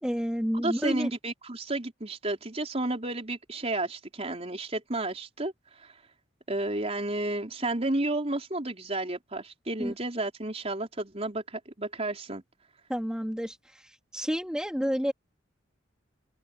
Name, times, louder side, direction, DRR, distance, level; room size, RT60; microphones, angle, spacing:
voice 1, 0.0-1.1 9.8-9.9 12.9-15.1, equal, 5° right, 3.2 m, -30 dB
voice 2, 0.5-5.5 5.8-5.9 6.5-12.4, right 2 dB, 35° right, 4.3 m, -32 dB
open air
head